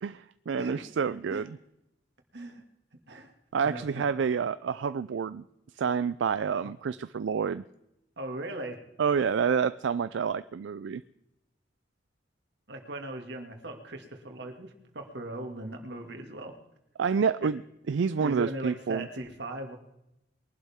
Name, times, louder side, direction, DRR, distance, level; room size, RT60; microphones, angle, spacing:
voice 1, 0.0-1.5 3.5-5.4 5.8-7.6 9.0-11.0 17.0-17.6 17.9-19.1, right 6 dB, 85° right, 14 dB, 0.4 m, -28 dB
voice 2, 2.3-2.6 3.1-3.3 3.6-4.1 8.2-8.8 12.7-16.6 17.4-17.5 18.2-19.8, right 1 dB, 65° right, 4 dB, 2.2 m, -38 dB
22.0 x 11.5 x 3.6 m, 0.87 s
head